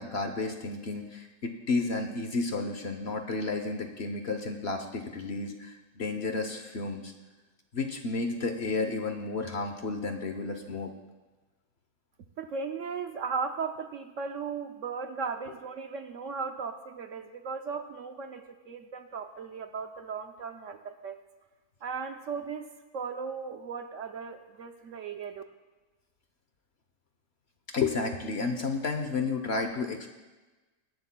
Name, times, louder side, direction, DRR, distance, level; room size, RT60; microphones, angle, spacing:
voice 1, 0.0-7.1 7.7-10.9 27.7-30.1, left 3 dB, 50° left, 6 dB, 0.9 m, -32 dB
voice 2, 12.4-21.2 21.8-22.7 22.9-25.4, right 5 dB, 65° right, 6 dB, 0.9 m, -36 dB
23.5 x 11.0 x 2.2 m, 1.2 s
omnidirectional pair, 1.6 m